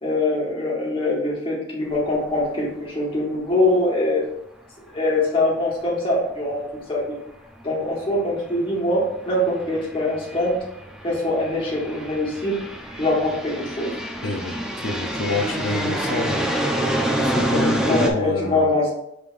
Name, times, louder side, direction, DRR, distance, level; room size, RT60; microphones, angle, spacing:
voice 1, 0.0-4.2 4.9-6.6 6.9-7.1 7.6-10.5 11.0-12.5 12.9-13.9 17.8-18.9, left 2 dB, 30° left, -5 dB, 1.4 m, -23 dB
sound 1, 2.0-2.1 2.4-2.5 6.5-6.6 7.7-7.9 8.5-18.1, right 1 dB, 5° right, 0.4 m, -27 dB
voice 2, 14.2-14.6 14.8-16.5 17.2-18.7, left 2 dB, 75° left, 4 dB, 0.6 m, -27 dB
5.3 x 3.4 x 2.5 m, 0.79 s
head